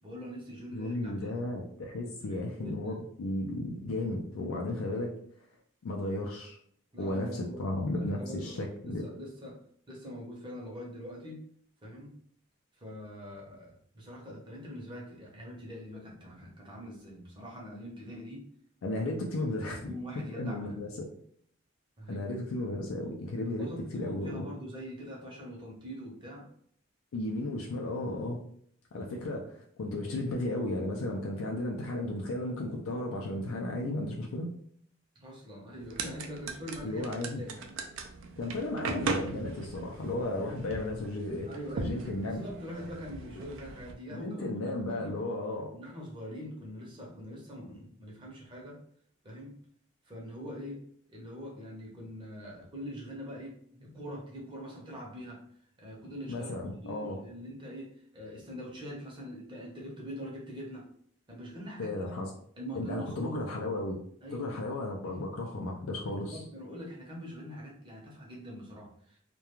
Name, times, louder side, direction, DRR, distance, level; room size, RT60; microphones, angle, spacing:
voice 1, 0.0-1.4 2.0-3.0 6.9-7.6 8.0-9.6 9.9-11.4 11.8-12.2 12.8-18.4 19.5-19.6 19.8-20.8 22.0-22.2 23.6-26.5 35.1-37.7 41.5-45.1 45.7-48.8 49.2-49.6 50.0-50.8 51.1-55.4 55.8-60.8 61.3-61.9 62.6-63.4 64.2-64.6 65.0-65.2 66.3-69.2, equal, 25° right, -2 dB, 0.7 m, -43 dB
voice 2, 0.7-5.1 5.8-6.6 7.0-9.1 18.8-19.9 20.3-20.9 22.1-24.5 27.1-28.4 28.9-34.5 36.8-37.4 38.4-41.5 41.8-42.4 44.1-45.7 56.3-57.2 61.8-62.3 62.7-64.0 64.3-66.4, left 1 dB, 85° left, 0 dB, 0.4 m, -34 dB
sound 1, 35.8-43.9, right 3 dB, 65° right, 0.4 m, -39 dB
2.3 x 2.2 x 2.9 m, 0.63 s
head